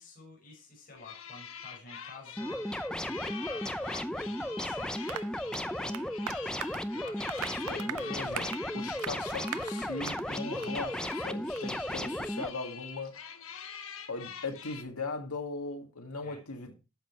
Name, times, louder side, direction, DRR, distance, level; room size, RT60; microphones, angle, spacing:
voice 1, 0.0-8.1 11.9-12.1 16.2-16.4, left 3 dB, 40° left, 6.2 m, -52 dB
sound 1, 1.0-14.8, left 7 dB, 65° left, 1.4 m, -45 dB
sound 2, 2.4-12.5, equal, 5° left, 0.6 m, -35 dB
Applause, 5.1-10.3 10.6-10.8 11.1-11.2 11.6-11.7, right 9 dB, 85° right, 0.6 m, -41 dB
voice 2, 7.7-13.3 14.1-16.7, left 3 dB, 80° left, 2.1 m, -39 dB
12.5 x 7.6 x 4.6 m
head